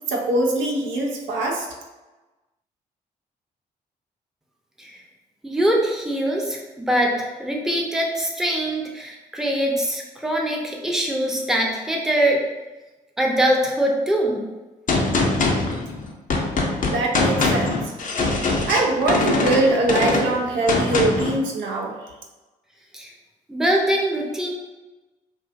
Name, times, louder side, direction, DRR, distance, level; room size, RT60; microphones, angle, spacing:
voice 1, 0.1-1.7 16.8-17.7 18.3-21.9, right 2 dB, 70° right, 0 dB, 0.4 m, -22 dB
voice 2, 5.4-12.4 13.2-14.4 22.9-23.1 23.5-24.5, right 1 dB, ahead, -1 dB, 0.6 m, -23 dB
Gunshot gunfire, 14.9-21.4, left 3 dB, 40° left, 0.5 m, -22 dB
2.4 x 2.2 x 2.5 m, 1.1 s
hypercardioid pair, 40°, 20 cm